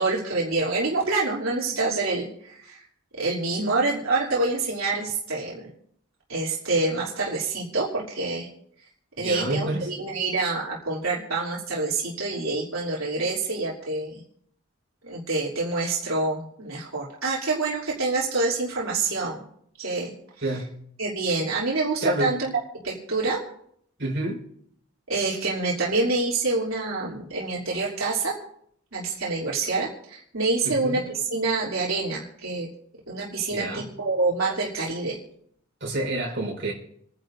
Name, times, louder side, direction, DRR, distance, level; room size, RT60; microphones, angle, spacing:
voice 1, 0.0-2.8 3.2-5.7 6.3-8.5 9.2-14.2 15.0-19.4 19.8-20.1 21.0-22.5 22.8-23.4 25.1-28.4 28.9-32.7 33.1-35.2, right 3 dB, 80° right, -5 dB, 3.2 m, -26 dB
voice 2, 9.2-9.9 20.4-20.7 22.0-22.3 24.0-24.4 30.6-31.0 33.5-33.9 35.8-36.7, right 1 dB, 55° right, -2 dB, 4.7 m, -28 dB
29.5 x 10.5 x 2.7 m, 0.67 s
head